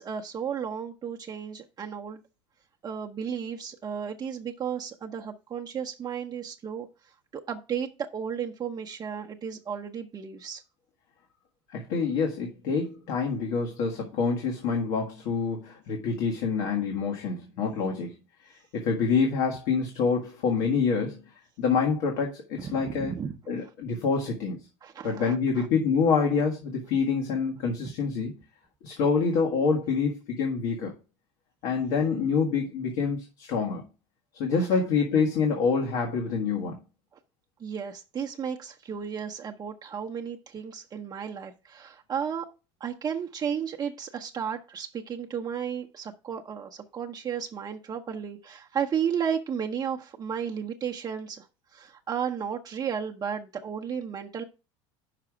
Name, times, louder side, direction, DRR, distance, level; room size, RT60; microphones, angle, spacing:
voice 1, 0.0-2.2 2.8-6.9 7.3-10.6 22.6-23.4 24.8-25.7 34.5-34.8 37.6-42.5 42.8-51.5 51.7-54.4, right 7 dB, 30° right, 0.8 m, -33 dB
voice 2, 11.7-18.1 18.7-21.2 21.6-23.1 23.5-24.6 25.0-28.3 28.8-30.9 31.6-33.8 34.3-36.8, left 5 dB, 70° left, 1.6 m, -26 dB
5.9 x 4.8 x 6.1 m
supercardioid pair, 115°, 14 cm